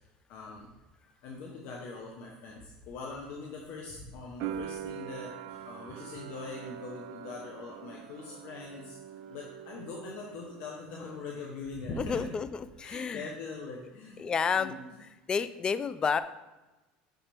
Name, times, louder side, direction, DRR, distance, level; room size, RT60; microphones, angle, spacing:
voice 1, 0.3-0.7 1.0-9.0 9.3-12.3 12.8-14.3 14.5-14.8, left 3 dB, 60° left, -1 dB, 1.1 m, -42 dB
sound 1, 4.4-11.2 11.5-12.3, right 9 dB, 65° right, 0.4 m, -43 dB
voice 2, 12.0-13.3 14.2-14.7 15.3-16.2, left 6 dB, 25° left, 13 dB, 0.4 m, -30 dB
6.5 x 5.8 x 3.4 m, 1.1 s
supercardioid pair, 130°, 3 cm